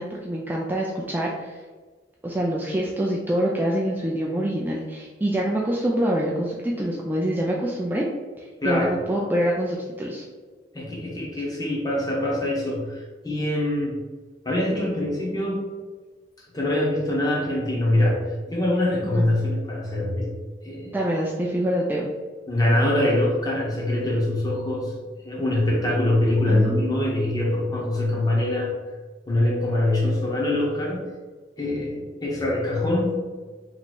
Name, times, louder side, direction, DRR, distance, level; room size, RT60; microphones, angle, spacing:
voice 1, 0.0-1.6 2.2-8.1 8.4-10.2 19.1-19.3 20.9-22.1 26.5-27.0, right 1 dB, 10° right, -3 dB, 0.3 m, -25 dB
voice 2, 10.7-14.0 14.4-15.6 16.5-20.4 20.6-21.0 22.5-24.9 25.2-28.7 29.3-31.0 31.6-33.3, left 1 dB, 20° left, -4 dB, 1.0 m, -24 dB
3.0 x 2.7 x 4.2 m, 1.4 s
head